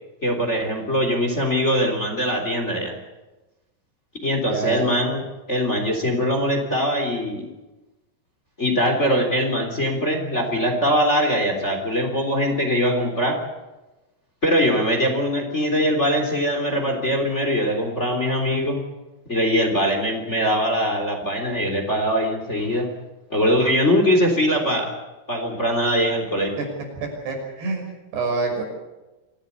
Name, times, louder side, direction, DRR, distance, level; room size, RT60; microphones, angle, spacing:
voice 1, 0.2-2.9 4.2-5.2 5.5-7.5 8.6-13.4 14.4-18.8 19.3-22.9 23.3-24.9 25.3-26.5, equal, 20° left, 3 dB, 3.4 m, -22 dB
voice 2, 4.5-4.9 26.6-26.7 27.0-28.6, right 3 dB, 90° right, 1 dB, 8.1 m, -27 dB
26.0 x 16.5 x 8.4 m, 1.1 s
omnidirectional pair, 4.6 m